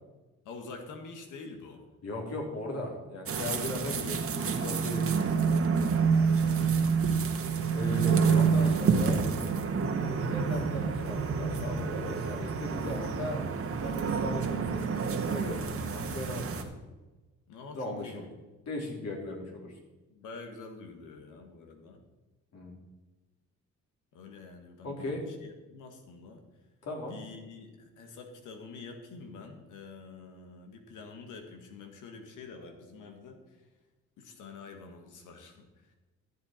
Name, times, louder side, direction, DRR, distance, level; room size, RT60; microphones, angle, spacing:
voice 1, 0.4-1.8 3.6-4.0 6.3-6.7 17.5-18.3 19.2-19.4 20.1-22.0 24.1-25.1 25.4-26.4 27.1-33.4 34.2-35.7, left 4 dB, 85° left, 5 dB, 1.8 m, -47 dB
voice 2, 2.0-5.3 7.7-9.2 10.0-13.4 13.8-14.9 15.2-16.7 17.7-18.2 18.7-19.7 22.5-22.8 24.8-25.2 26.8-27.2, left 2 dB, 55° left, -1 dB, 3.4 m, -38 dB
sound 1, 3.3-16.6, right 5 dB, 50° right, 1.4 m, -28 dB
13.0 x 8.1 x 4.4 m, 1.1 s
cardioid pair, 90°, 30 cm